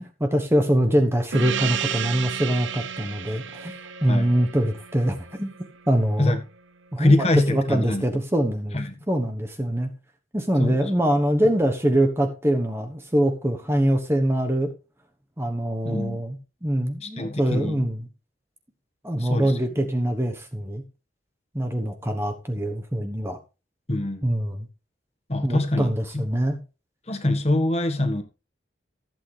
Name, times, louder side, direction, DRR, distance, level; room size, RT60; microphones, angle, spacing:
voice 1, 0.0-3.7 4.0-5.5 5.9-6.4 6.9-7.2 7.5-8.8 9.1-9.9 10.3-14.7 15.4-18.1 19.0-20.8 21.5-23.4 24.2-24.7 25.4-26.6, right 1 dB, 15° right, 1.2 m, -24 dB
Gong, 1.3-6.3, right 8 dB, 85° right, 0.9 m, -33 dB
voice 2, 7.0-8.0 8.7-8.9 10.6-10.8 15.8-16.2 17.0-17.8 19.2-19.5 23.9-24.3 25.3-25.9 26.1-26.2 27.1-28.2, left 1 dB, 35° left, 1.6 m, -23 dB
15.0 x 8.3 x 3.4 m
head